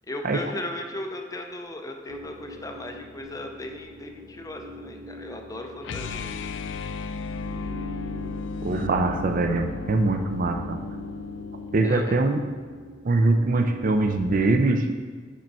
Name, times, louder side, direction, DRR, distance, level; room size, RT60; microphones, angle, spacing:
voice 1, 0.1-6.3 11.8-12.2, left 1 dB, 20° left, 3 dB, 0.5 m, -36 dB
sound 1, 2.1-13.9, equal, 70° right, 0.8 m, -43 dB
sound 2, 5.8-11.9, left 4 dB, 75° left, 0.3 m, -34 dB
voice 2, 8.6-10.8 11.7-12.4 13.0-14.9, right 2 dB, 50° right, 6 dB, 0.5 m, -23 dB
5.2 x 4.5 x 5.4 m, 1.5 s
head